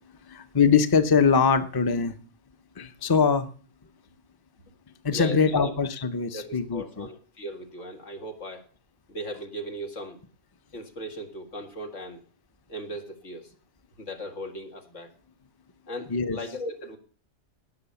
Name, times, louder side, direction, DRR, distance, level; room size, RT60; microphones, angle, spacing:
voice 1, 0.3-2.2 2.8-3.5 5.0-7.1 16.1-16.4, left 6 dB, 20° left, 10 dB, 0.7 m, -22 dB
voice 2, 5.1-5.7 6.3-8.6 9.1-10.2 10.7-12.2 12.7-13.5 14.0-15.1 15.9-17.0, equal, 85° left, 4 dB, 2.5 m, -37 dB
18.0 x 6.1 x 7.0 m, 0.41 s
omnidirectional pair, 1.2 m